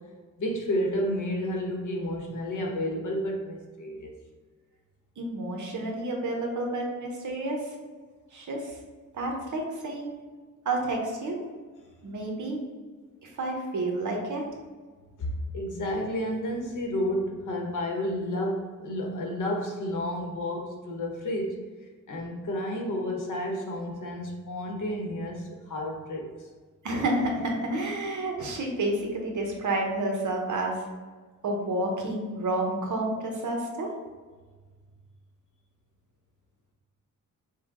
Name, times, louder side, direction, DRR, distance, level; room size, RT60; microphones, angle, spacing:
voice 1, 0.4-4.1 15.2-21.6 22.1-26.5, left 1 dB, 65° left, 1 dB, 1.0 m, -31 dB
voice 2, 5.2-7.6 8.3-8.8 9.1-10.1 10.6-11.4 12.0-12.6 13.2-14.4 26.8-30.8 31.4-33.9, right 2 dB, 65° right, 1 dB, 0.9 m, -30 dB
5.7 x 2.2 x 3.7 m, 1.4 s
wide cardioid pair, 160°, 32 cm